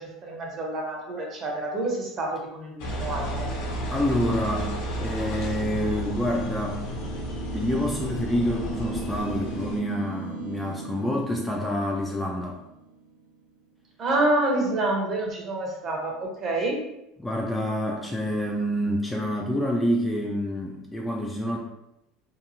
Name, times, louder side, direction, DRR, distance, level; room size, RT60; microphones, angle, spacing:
voice 1, 0.0-3.5 14.0-16.9, right 2 dB, 35° right, 0 dB, 0.8 m, -28 dB
Engine, 2.8-9.8, equal, 75° left, 0.8 m, -32 dB
voice 2, 3.9-6.8 7.5-12.6 17.2-21.6, equal, 5° left, -1 dB, 0.3 m, -27 dB
sound 1, 6.8-13.4, right 3 dB, 90° right, 1.2 m, -38 dB
2.9 x 2.2 x 2.6 m, 0.85 s
supercardioid pair, 140°, 0 cm